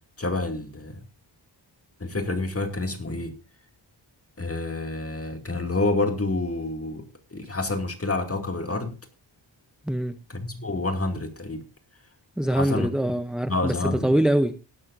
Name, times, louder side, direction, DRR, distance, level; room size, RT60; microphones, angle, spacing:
voice 1, 0.2-1.0 2.0-3.4 4.4-9.0 10.3-11.6 12.5-13.1 13.5-14.1, left 2 dB, 30° left, 2.3 m, -28 dB
voice 2, 9.9-10.2 12.4-14.6, right 1 dB, ahead, 0.6 m, -24 dB
17.0 x 12.0 x 2.6 m
wide cardioid pair, 90°, 45 cm